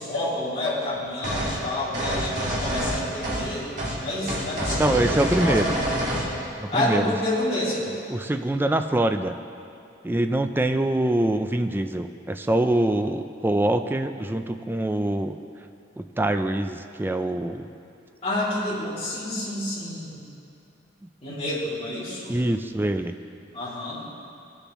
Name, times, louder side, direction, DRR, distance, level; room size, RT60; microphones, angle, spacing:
voice 1, 0.0-3.7 4.0-5.8 6.7-7.9 18.2-20.2 21.2-22.4 23.5-24.0, left 1 dB, 35° left, -9 dB, 2.8 m, -29 dB
sound 1, 1.2-1.6 1.9-3.5 3.8-4.0 4.3-6.3, right 1 dB, 40° right, 1.8 m, -27 dB
voice 2, 4.8-5.8 6.6-7.1 8.1-9.4 10.0-15.4 16.0-17.7 22.3-23.2, right 1 dB, 10° right, 8 dB, 0.4 m, -24 dB
19.0 x 6.8 x 3.1 m, 2.6 s
head